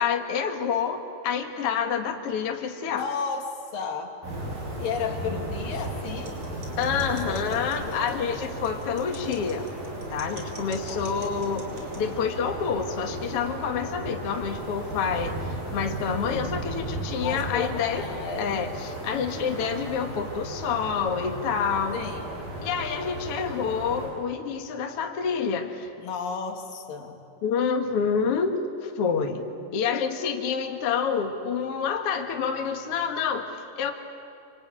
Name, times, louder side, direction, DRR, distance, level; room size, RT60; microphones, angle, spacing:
voice 1, 0.0-3.1 6.8-9.7 10.1-11.7 12.0-18.0 18.4-22.0 22.6-25.9 27.4-29.5 29.7-33.9, left 6 dB, 50° left, 3 dB, 2.1 m, -28 dB
voice 2, 2.9-4.2 4.8-6.3 7.3-8.1 10.9-11.0 17.2-18.6 21.9-22.3 26.0-27.2 29.6-29.8, left 6 dB, 75° left, 3 dB, 3.6 m, -33 dB
sound 1, 4.2-24.1, right 1 dB, 80° right, 9.1 m, -35 dB
sound 2, 6.1-12.0, right 3 dB, 40° right, 4.3 m, -45 dB
26.0 x 25.5 x 8.9 m, 2.5 s
omnidirectional pair, 4.1 m